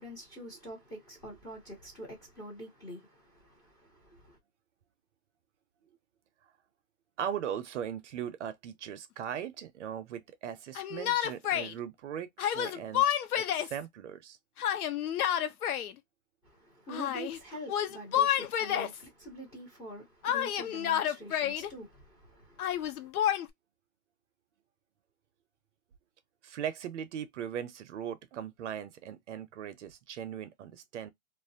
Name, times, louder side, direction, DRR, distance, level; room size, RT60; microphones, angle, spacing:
voice 1, 0.0-4.4 16.4-23.1, right 1 dB, 10° left, 0.6 m, -46 dB
voice 2, 7.2-13.1 13.3-14.4 26.4-31.1, right 9 dB, 55° right, 0.5 m, -39 dB
Yell, 10.8-11.7 12.4-13.8 14.6-15.9 16.9-17.4 17.7-19.0 20.2-21.7 22.6-23.5, left 10 dB, 85° left, 0.6 m, -29 dB
2.4 x 2.0 x 2.6 m
hypercardioid pair, 155°, 43 cm